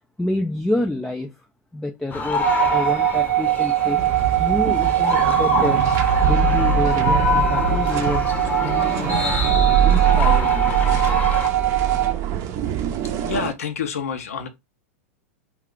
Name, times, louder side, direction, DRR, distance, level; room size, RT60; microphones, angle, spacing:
voice 1, 0.2-1.3 1.7-4.0 4.4-5.8 6.2-8.3 8.6-10.7, left 1 dB, 5° left, 0.3 m, -28 dB
sound 1, 2.1-11.5, left 3 dB, 20° left, 0.7 m, -26 dB
sound 2, 2.4-12.1, right 13 dB, 75° right, 0.6 m, -22 dB
sound 3, 4.0-13.5, right 7 dB, 40° right, 0.6 m, -23 dB
voice 2, 13.2-14.5, left 6 dB, 80° left, 0.6 m, -27 dB
2.4 x 2.3 x 3.5 m
hypercardioid pair, 120°, 8 cm